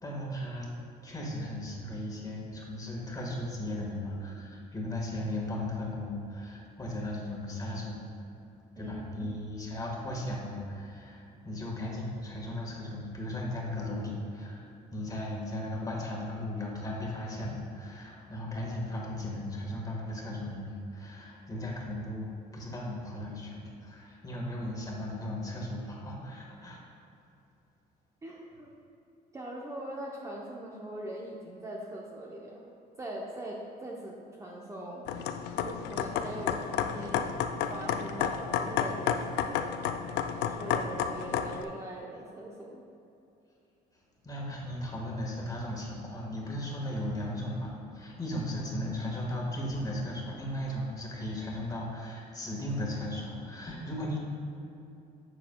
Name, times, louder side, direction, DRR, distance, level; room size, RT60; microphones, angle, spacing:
voice 1, 0.0-0.8 1.0-8.1 8.8-26.8 44.2-54.2, left 1 dB, 20° left, -2 dB, 1.6 m, -36 dB
voice 2, 8.8-9.3 28.2-28.7 29.3-35.4 35.6-39.9 40.3-42.8, right 1 dB, 20° right, -3 dB, 0.7 m, -41 dB
sound 1, 35.1-41.6, left 8 dB, 85° left, 0.4 m, -31 dB
9.9 x 6.6 x 2.3 m, 2.8 s
cardioid pair, 110°, 17 cm